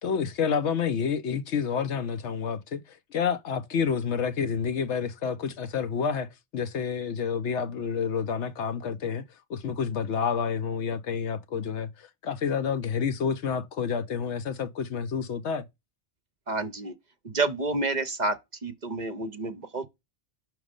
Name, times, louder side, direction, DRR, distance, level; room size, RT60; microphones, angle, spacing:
voice 1, 0.0-6.3 6.5-9.2 9.5-15.7, left 6 dB, 75° left, 1.0 m, -29 dB
voice 2, 16.5-16.9 17.2-18.4 18.6-19.9, right 3 dB, 45° right, 0.7 m, -29 dB
6.1 x 3.1 x 5.1 m
omnidirectional pair, 1.2 m